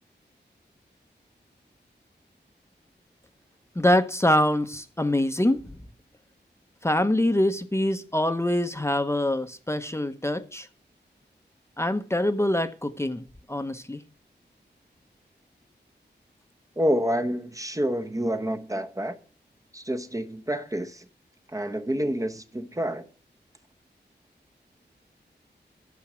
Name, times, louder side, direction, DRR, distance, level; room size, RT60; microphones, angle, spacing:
voice 1, 3.8-5.6 6.8-10.7 11.8-14.0, left 1 dB, 15° left, 0.8 m, -24 dB
voice 2, 16.8-19.2 19.7-21.1 21.5-23.1, equal, 20° right, 0.8 m, -28 dB
11.5 x 7.2 x 6.0 m
wide cardioid pair, 105°, 18 cm